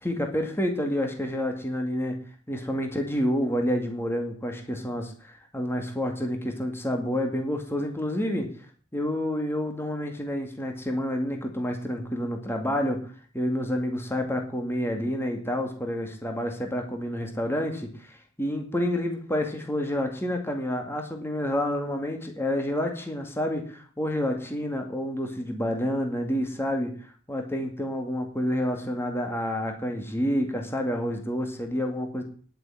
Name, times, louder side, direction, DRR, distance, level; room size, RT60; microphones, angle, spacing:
voice 1, 0.0-2.2 2.5-8.5 8.9-13.0 13.3-26.9 27.3-32.2, equal, 10° left, 3 dB, 2.2 m, -29 dB
10.5 x 8.0 x 9.9 m, 0.43 s
head